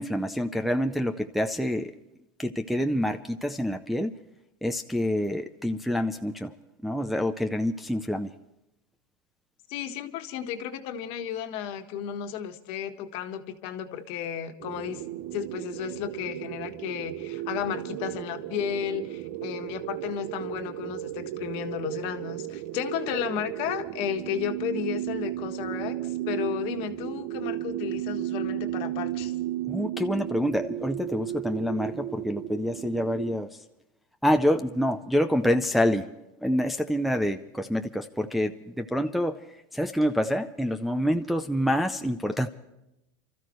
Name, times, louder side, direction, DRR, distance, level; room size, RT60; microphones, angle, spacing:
voice 1, 0.0-1.9 2.4-4.1 4.6-6.5 6.8-8.3 29.7-33.6 34.2-36.1 36.4-39.4 39.7-42.5, equal, ahead, 4 dB, 0.5 m, -27 dB
voice 2, 9.7-15.0 15.3-29.3, left 9 dB, 50° left, 6 dB, 1.5 m, -33 dB
sound 1, 14.6-33.4, right 14 dB, 50° right, 0.8 m, -34 dB
29.0 x 14.0 x 3.1 m, 0.89 s
supercardioid pair, 150°, 12 cm